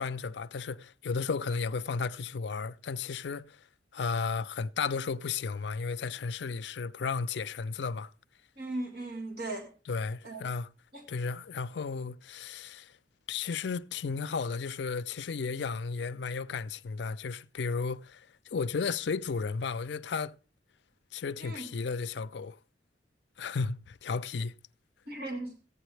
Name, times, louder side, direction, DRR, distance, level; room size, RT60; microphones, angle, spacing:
voice 1, 0.0-3.6 3.9-8.1 9.9-10.7 11.1-12.9 13.3-20.3 21.1-22.6 23.4-24.5, left 5 dB, 70° left, 0.4 m, -34 dB
voice 2, 8.6-9.7 10.2-10.5 10.9-11.1 21.4-21.7 25.1-25.5, right 2 dB, 60° right, 1.8 m, -37 dB
15.0 x 9.1 x 3.2 m
head